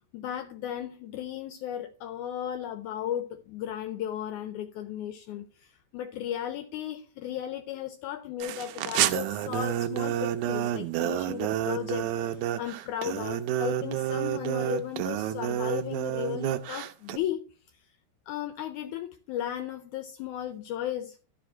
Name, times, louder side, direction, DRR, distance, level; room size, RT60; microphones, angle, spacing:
voice 1, 0.1-17.5 18.3-21.2, left 11 dB, 80° left, 1.8 m, -35 dB
sound 1, 8.4-17.2, right 12 dB, 80° right, 1.8 m, -29 dB
12.0 x 4.8 x 4.2 m
omnidirectional pair, 3.9 m